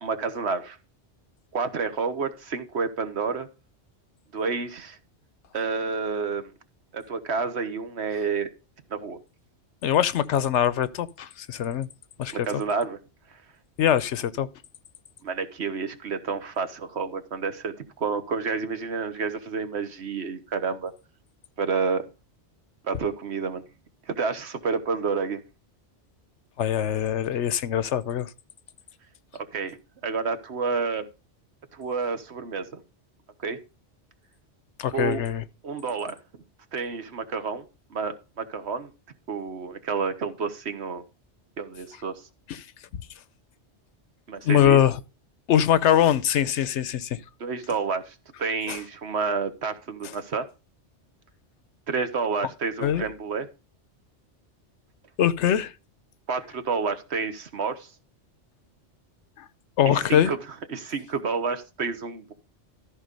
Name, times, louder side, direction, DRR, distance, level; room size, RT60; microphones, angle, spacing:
voice 1, 0.0-0.8 1.5-3.5 4.3-5.0 5.5-6.5 6.9-8.5 8.9-9.2 12.3-13.0 15.2-20.9 21.6-22.0 22.9-23.6 24.1-25.4 29.3-29.8 30.0-31.1 31.7-32.8 33.4-33.6 34.9-35.2 35.6-36.2 36.7-37.6 37.9-38.9 39.3-41.0 41.6-42.1 44.3-44.8 47.4-50.5 51.9-53.5 56.3-57.9 59.9-60.4 60.7-62.3, right 5 dB, 65° right, 1.4 m, -29 dB
voice 2, 9.8-11.9 12.2-12.5 13.8-14.5 26.6-28.3 34.8-35.4 42.5-42.6 44.4-45.0 45.5-47.2 48.7-48.8 52.8-53.0 55.2-55.7 59.4-59.5 59.8-60.3, left 10 dB, 80° left, 1.0 m, -22 dB
13.5 x 5.0 x 5.2 m
omnidirectional pair, 1.2 m